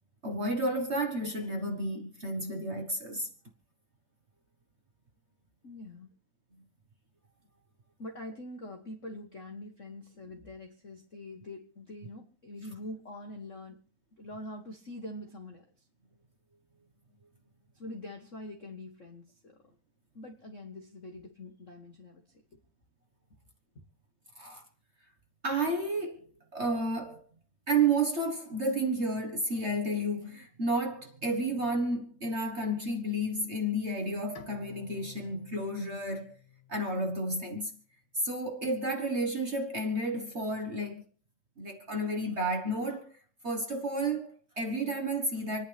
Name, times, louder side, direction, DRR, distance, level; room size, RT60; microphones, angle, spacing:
voice 1, 0.2-3.3 24.4-24.6 25.4-26.3 26.5-27.2 27.7-36.4 36.7-37.8 38.1-41.0 41.6-43.2 43.4-45.6, right 1 dB, 45° right, 0.8 m, -31 dB
voice 2, 5.6-6.1 8.0-13.8 14.2-15.9 17.7-19.6 20.1-22.2, left 1 dB, 40° left, 1.2 m, -44 dB
Bowed string instrument, 34.3-37.6, left 10 dB, 55° left, 1.6 m, -53 dB
28.0 x 10.0 x 3.4 m
omnidirectional pair, 3.4 m